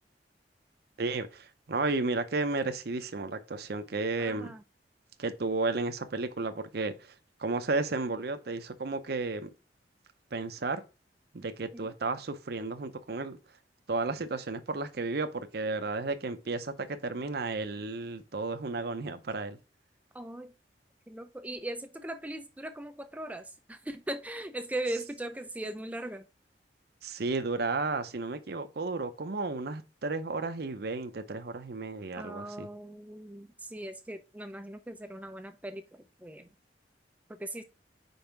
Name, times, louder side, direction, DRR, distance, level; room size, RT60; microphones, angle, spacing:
voice 1, 1.0-4.5 5.2-7.1 7.4-9.5 10.3-10.8 11.3-13.4 13.9-19.6 27.0-32.7, right 3 dB, 60° right, 0.7 m, -33 dB
voice 2, 4.2-4.6 11.7-11.9 20.1-20.5 21.1-26.2 32.2-36.5 37.4-37.6, right 1 dB, 10° right, 0.4 m, -39 dB
5.4 x 4.9 x 4.4 m
head